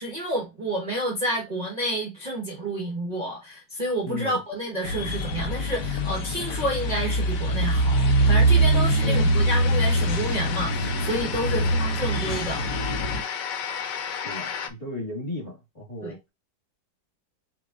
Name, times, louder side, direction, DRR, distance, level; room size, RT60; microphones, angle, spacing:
voice 1, 0.0-12.6 16.0-16.1, right 1 dB, 25° right, 1.4 m, -29 dB
voice 2, 4.0-4.4 9.0-9.3 11.5-11.7 14.2-16.2, left 2 dB, 20° left, 2.2 m, -35 dB
sound 1, 4.8-13.2, right 1 dB, 60° left, 1.1 m, -23 dB
sound 2, 6.3-14.7, left 7 dB, 90° left, 1.4 m, -35 dB
6.6 x 3.1 x 2.5 m
omnidirectional pair, 1.8 m